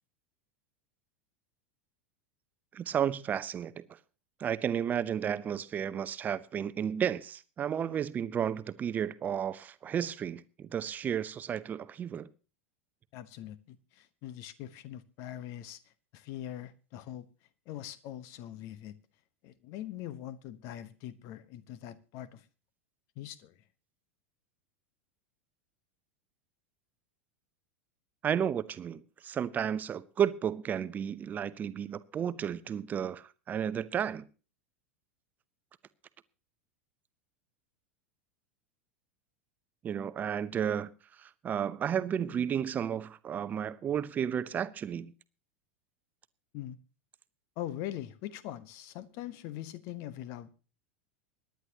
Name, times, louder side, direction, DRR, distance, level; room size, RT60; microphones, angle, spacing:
voice 1, 2.7-3.8 4.4-12.3 28.2-34.2 39.8-40.9 41.2-45.1, right 8 dB, 25° right, 0.8 m, -32 dB
voice 2, 13.1-15.8 16.1-17.3 17.7-18.9 19.4-22.4 23.2-23.5 46.5-46.8 47.6-50.5, left 12 dB, 45° left, 1.1 m, -42 dB
24.0 x 10.5 x 2.9 m
figure-of-eight pair, 85°, 7 cm